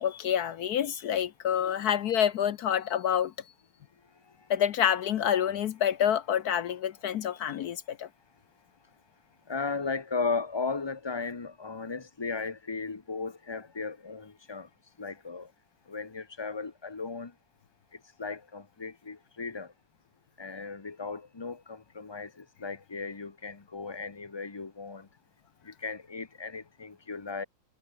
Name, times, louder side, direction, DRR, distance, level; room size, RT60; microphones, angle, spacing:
voice 1, 0.0-3.3 4.5-8.1, left 9 dB, 65° left, 1.1 m, -27 dB
voice 2, 9.5-14.7 15.0-15.5 15.9-17.3 18.2-19.7 20.4-25.1 25.6-27.4, left 4 dB, 30° left, 0.4 m, -36 dB
omnidirectional pair, 2.1 m